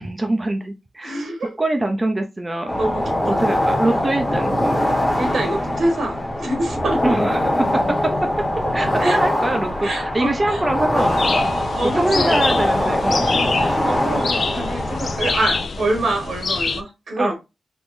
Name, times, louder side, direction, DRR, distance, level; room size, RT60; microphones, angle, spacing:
voice 1, 0.0-1.2 1.6-2.8 3.2-4.8 7.0-7.8 8.7-11.5 11.9-13.3 17.2-17.3, right 1 dB, 20° right, 0.5 m, -23 dB
voice 2, 1.0-1.6 2.8-3.5 5.2-7.1 9.0-9.2 9.8-10.7 11.5-12.4 13.2-17.3, right 1 dB, 75° right, 1.2 m, -26 dB
sound 1, 2.7-15.7, left 1 dB, 10° left, 1.1 m, -22 dB
sound 2, 11.0-16.8, left 4 dB, 55° left, 0.4 m, -26 dB
3.5 x 3.0 x 2.5 m
wide cardioid pair, 90°, 0 cm